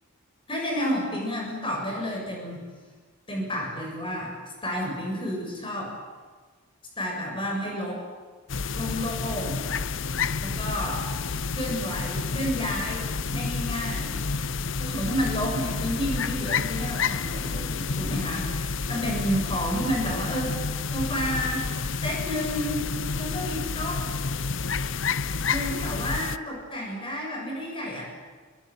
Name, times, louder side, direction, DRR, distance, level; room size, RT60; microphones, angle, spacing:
voice 1, 0.5-2.6 3.3-4.3 4.6-5.9 7.0-8.0 8.7-9.6 10.4-11.1 11.5-14.1 14.8-18.6 18.9-20.6 20.9-21.7 22.0-22.8 23.1-24.1 25.5-28.0, equal, 25° left, 0 dB, 7.5 m, -30 dB
sound 1, 8.5-26.4, left 5 dB, 65° left, 0.7 m, -30 dB
27.5 x 22.5 x 9.1 m, 1.5 s
head